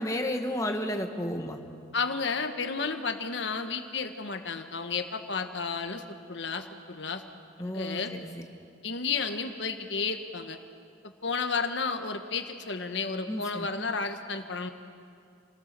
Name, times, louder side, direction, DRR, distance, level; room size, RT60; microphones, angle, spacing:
voice 1, 0.0-1.6 7.6-8.4 13.3-13.7, left 1 dB, 15° left, 4 dB, 1.5 m, -32 dB
voice 2, 1.9-7.2 7.6-8.1 8.8-10.6 11.2-14.7, left 4 dB, 65° left, 7 dB, 1.3 m, -32 dB
28.5 x 18.5 x 6.8 m, 2.3 s
head